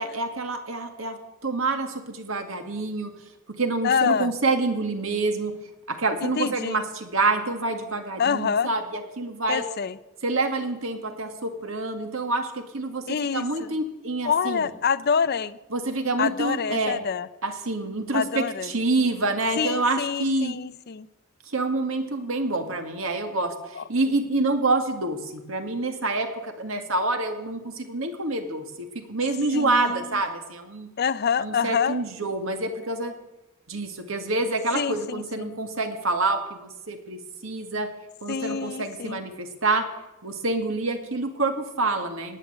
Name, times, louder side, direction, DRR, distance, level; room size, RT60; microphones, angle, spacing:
voice 1, 0.0-3.1 3.6-5.5 5.9-9.7 10.2-14.7 15.7-17.0 17.4-20.6 21.5-30.9 31.4-33.1 33.7-37.9 38.2-39.8 40.2-42.4, right 2 dB, 70° right, 6 dB, 2.1 m, -27 dB
voice 2, 3.8-4.3 6.4-6.8 8.2-8.7 9.5-9.9 13.1-13.7 14.2-15.6 16.2-17.3 18.1-18.7 19.6-21.1 23.8-23.9 29.5-30.0 31.0-32.0 34.7-35.5 38.3-39.2, left 6 dB, 50° left, 15 dB, 0.5 m, -26 dB
18.0 x 9.4 x 8.0 m, 1.0 s
head